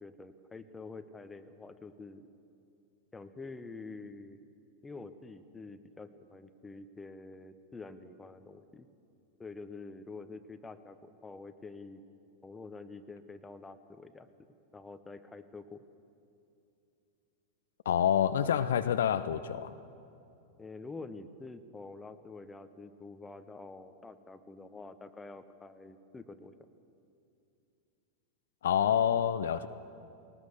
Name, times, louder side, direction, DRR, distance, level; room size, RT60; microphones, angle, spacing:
voice 1, 0.0-2.3 3.1-4.4 4.8-8.9 9.4-12.0 12.4-14.3 14.7-15.8 20.6-26.5, left 3 dB, 10° left, 10 dB, 1.0 m, -47 dB
voice 2, 17.9-19.7 28.6-29.7, left 9 dB, 60° left, 12 dB, 0.6 m, -27 dB
20.5 x 19.0 x 7.0 m, 2.6 s
figure-of-eight pair, 90°, 0 cm